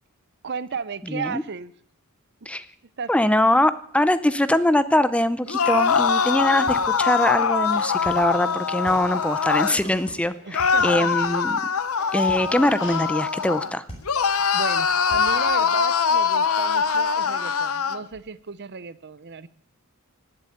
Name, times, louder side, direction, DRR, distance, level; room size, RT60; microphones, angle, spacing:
voice 1, 0.4-1.7 3.0-3.1 10.4-11.1 14.5-19.5, right 5 dB, 55° right, 16 dB, 0.7 m, -34 dB
voice 2, 1.1-1.4 2.5-2.7 3.1-11.6 12.1-13.8, left 1 dB, 5° left, 14 dB, 0.6 m, -22 dB
sound 1, 5.5-9.8 10.5-13.7 14.0-18.0, left 6 dB, 80° left, 0.8 m, -23 dB
sound 2, 6.6-16.5, equal, 25° left, 6.1 m, -43 dB
sound 3, 7.4-13.1, left 4 dB, 55° left, 3.1 m, -46 dB
17.5 x 7.9 x 10.0 m, 0.63 s
head